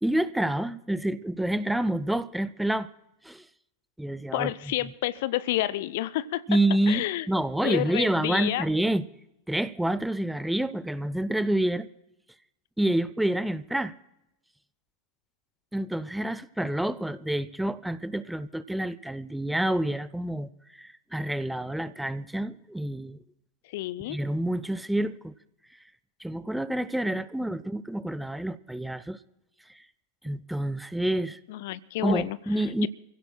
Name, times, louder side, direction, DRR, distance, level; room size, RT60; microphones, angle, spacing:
voice 1, 0.0-2.9 3.2-3.4 4.0-4.9 6.5-9.1 9.5-11.9 12.8-13.9 15.7-23.2 24.1-25.3 26.2-29.2 29.7-29.8 30.2-31.4 32.0-32.9, right 1 dB, 5° right, 0.5 m, -28 dB
voice 2, 4.3-6.4 6.9-7.3 7.6-8.7 23.7-24.2 31.5-32.4 32.8-32.9, left 15 dB, 50° left, 0.5 m, -29 dB
29.0 x 16.0 x 2.3 m
figure-of-eight pair, 90°, 0 cm